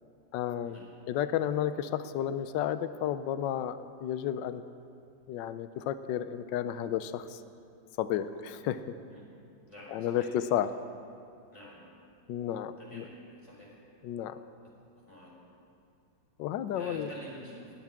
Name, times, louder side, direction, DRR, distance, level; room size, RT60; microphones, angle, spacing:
voice 1, 0.3-0.8 1.1-4.6 5.3-7.4 8.0-8.9 9.9-10.7 12.3-13.0 14.0-14.4 16.4-17.1, left 10 dB, 80° left, 12 dB, 1.3 m, -32 dB
voice 2, 9.7-10.3 11.5-11.8 12.8-13.8 14.6-14.7 15.1-15.3 16.8-17.7, equal, 15° left, -5 dB, 4.2 m, -47 dB
30.0 x 12.0 x 3.6 m, 2.5 s
omnidirectional pair, 2.0 m